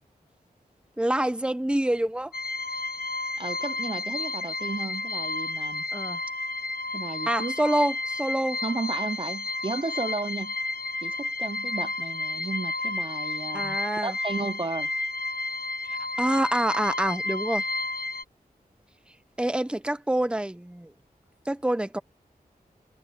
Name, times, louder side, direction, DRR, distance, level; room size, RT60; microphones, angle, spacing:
voice 1, 1.0-2.3 5.9-6.2 7.3-8.6 13.5-14.2 16.2-17.6 19.4-20.9 21.5-22.0, right 1 dB, 5° right, 1.0 m, -26 dB
sound 1, 2.3-18.2, left 2 dB, 75° left, 0.9 m, -31 dB
voice 2, 3.4-5.8 6.9-7.5 8.6-10.6 11.0-13.8 14.0-14.9, right 3 dB, 30° right, 0.9 m, -33 dB
wide cardioid pair, 105°, 16 cm